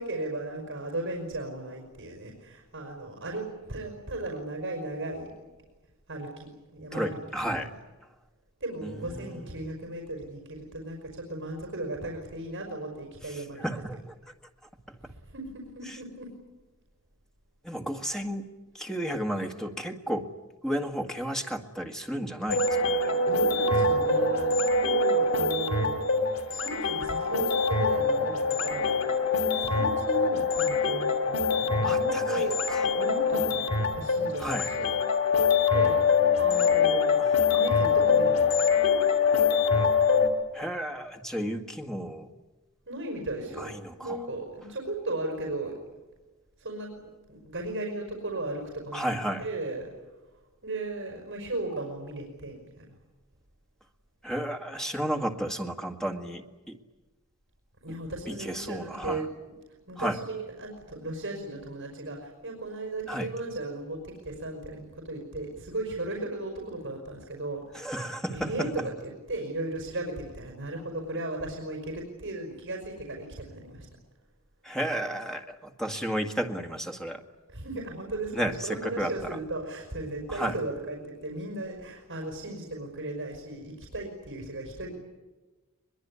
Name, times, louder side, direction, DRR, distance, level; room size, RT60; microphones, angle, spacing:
voice 1, 0.0-5.3 6.1-7.7 8.6-13.7 15.1-16.4 23.3-26.1 26.5-34.9 35.3-37.2 37.5-38.6 42.9-45.8 46.6-49.9 50.6-53.0 57.8-59.3 59.9-67.9 68.3-73.9 77.5-84.9, right 2 dB, 60° right, 1 dB, 5.3 m, -36 dB
voice 2, 6.9-7.7 8.8-9.4 13.3-14.0 17.6-18.4 18.7-20.3 20.6-23.3 31.8-32.8 34.4-34.7 36.5-37.3 40.5-42.3 43.6-44.2 48.9-49.5 54.2-56.8 58.3-59.2 60.0-60.2 63.1-63.3 67.7-68.7 74.6-77.2 78.3-79.3 80.3-80.5, equal, 5° left, 4 dB, 1.9 m, -33 dB
sound 1, 22.5-40.3, left 4 dB, 75° left, 3.0 m, -24 dB
22.5 x 22.5 x 9.8 m, 1.2 s
head